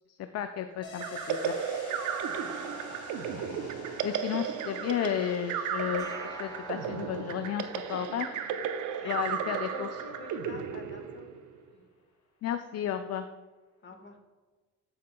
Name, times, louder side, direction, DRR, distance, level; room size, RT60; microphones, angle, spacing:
voice 1, 0.3-1.5 4.0-8.3 9.0-9.9 12.4-13.3, left 9 dB, 55° left, 8 dB, 0.5 m, -33 dB
sound 1, 0.8-10.2 10.5-10.6, left 2 dB, 75° left, 1.9 m, -48 dB
sound 2, 1.0-11.6, right 7 dB, 80° right, 0.7 m, -34 dB
voice 2, 2.4-2.9 9.0-11.3 11.7-11.8 13.8-14.2, left 3 dB, 40° left, 5 dB, 1.4 m, -47 dB
sound 3, 6.0-9.1, left 1 dB, 10° left, 1.1 m, -48 dB
13.5 x 5.7 x 2.2 m, 1.3 s
cardioid pair, 90°, 30 cm